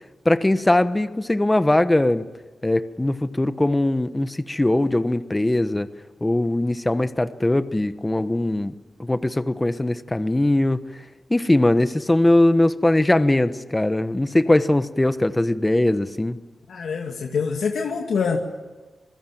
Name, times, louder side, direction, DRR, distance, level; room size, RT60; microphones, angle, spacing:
voice 1, 0.2-2.2 2.6-5.9 6.2-8.7 9.0-10.8 11.3-16.4, left 1 dB, 20° left, 11 dB, 1.2 m, -20 dB
voice 2, 16.7-18.4, left 5 dB, 85° left, 1 dB, 2.3 m, -25 dB
26.5 x 21.5 x 9.3 m, 1.2 s
cardioid pair, 70°, 0 cm